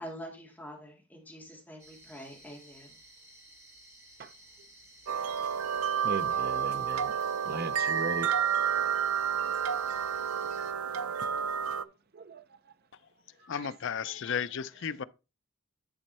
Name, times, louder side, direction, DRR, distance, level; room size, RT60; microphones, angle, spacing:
voice 1, 0.0-3.0, equal, 10° left, 2.1 m, -45 dB
sound 1, 1.8-10.7, right 1 dB, 15° right, 2.6 m, -55 dB
sound 2, 5.1-11.8, right 7 dB, 90° right, 0.6 m, -30 dB
voice 2, 6.0-7.1 7.4-8.3 12.1-12.4 13.5-13.7 14.3-14.4, right 3 dB, 45° right, 0.6 m, -37 dB
voice 3, 13.5-15.0, left 7 dB, 60° left, 0.5 m, -34 dB
10.5 x 4.5 x 4.2 m
head